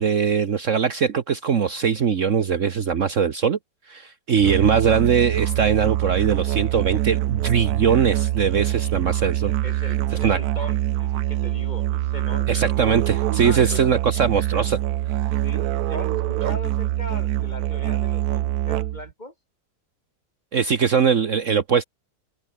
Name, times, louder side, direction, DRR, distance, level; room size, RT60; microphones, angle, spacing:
voice 1, 0.0-3.6 3.9-9.5 10.2-10.4 12.5-14.8 20.5-21.8, right 7 dB, 55° right, 1.4 m, -21 dB
Musical instrument, 4.4-19.1, right 14 dB, 75° right, 1.1 m, -24 dB
voice 2, 9.6-12.6 13.4-14.0 15.4-19.3, left 1 dB, 25° left, 4.8 m, -38 dB
omnidirectional pair, 1.7 m